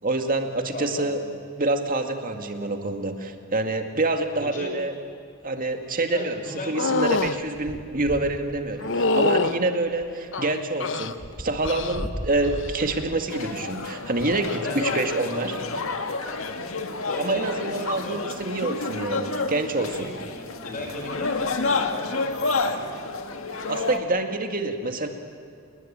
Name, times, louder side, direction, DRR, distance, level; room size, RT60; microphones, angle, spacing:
voice 1, 0.0-1.2 1.6-4.9 5.4-6.4 6.7-15.6 17.2-19.9 23.7-25.1, right 2 dB, 45° right, 5 dB, 2.2 m, -27 dB
voice 2, 0.7-1.3 4.4-4.8 6.1-6.8 8.9-9.4 14.3-15.1 15.4-15.5 16.2-16.5 17.1-18.3 19.8-23.0, left 2 dB, 40° left, 2 dB, 5.4 m, -37 dB
sound 1, 4.8-4.9 5.1-14.5 15.3-16.6 17.3-17.4 17.6-17.7 19.4-19.5 20.2-20.5 20.8-22.1, left 1 dB, 20° left, 1.2 m, -42 dB
sound 2, 6.7-7.4 8.8-9.6 10.3-11.1 11.6-12.1 12.4-12.9 14.4-14.6, left 3 dB, 65° left, 1.0 m, -25 dB
sound 3, 13.3-24.0, left 3 dB, 85° left, 1.8 m, -30 dB
28.5 x 20.5 x 8.8 m, 2.3 s
head